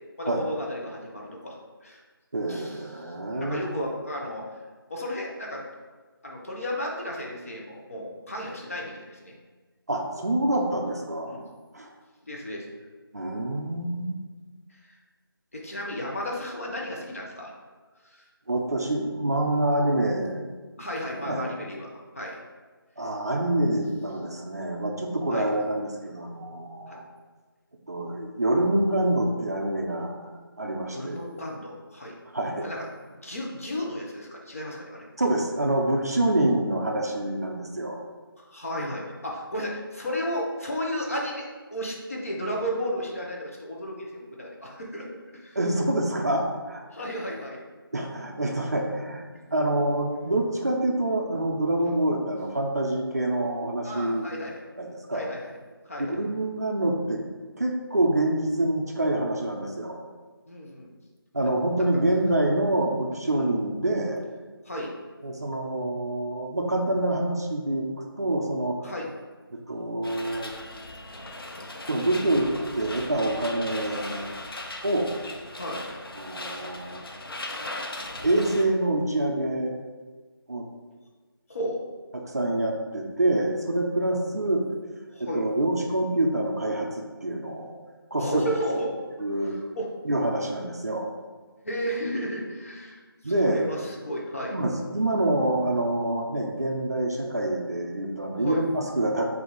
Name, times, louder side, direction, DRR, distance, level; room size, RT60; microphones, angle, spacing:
voice 1, 0.2-2.0 2.5-4.4 4.9-5.6 6.2-9.3 11.2-11.4 12.2-12.7 15.5-17.5 18.0-18.3 20.8-22.4 25.3-25.5 26.9-27.0 30.9-32.1 32.6-32.9 33.2-35.1 38.4-41.4 41.7-45.1 45.3-45.6 46.9-47.6 51.8-51.9 53.8-54.6 55.1-55.5 55.8-56.2 60.5-60.9 63.3-63.5 64.6-64.9 68.8-69.1 75.5-75.9 81.5-81.8 85.1-85.5 88.2-88.9 89.7-89.9 91.6-94.6 98.4-98.6, equal, 35° left, -2 dB, 0.7 m, -33 dB
voice 2, 2.3-3.7 9.9-11.4 11.7-11.9 13.1-14.2 18.5-20.5 20.8-20.9 21.2-21.4 23.0-27.0 27.9-30.2 30.6-31.2 32.3-32.7 35.2-38.0 45.6-46.8 47.9-49.2 49.5-54.3 54.8-55.3 56.0-57.2 57.6-60.0 61.3-64.2 65.2-67.9 68.2-68.8 69.5-70.5 71.9-72.5 72.7-74.3 74.8-75.2 76.2-77.0 78.2-79.8 80.5-80.6 82.1-84.6 85.2-87.8 88.1-88.4 89.2-89.6 90.0-91.1 93.2-93.7 94.5-99.3, right 1 dB, 40° right, 1 dB, 0.5 m, -26 dB
sound 1, 70.0-78.6, left 2 dB, 70° left, 0.7 m, -38 dB
4.9 x 2.7 x 3.8 m, 1.3 s
figure-of-eight pair, 175°, 13 cm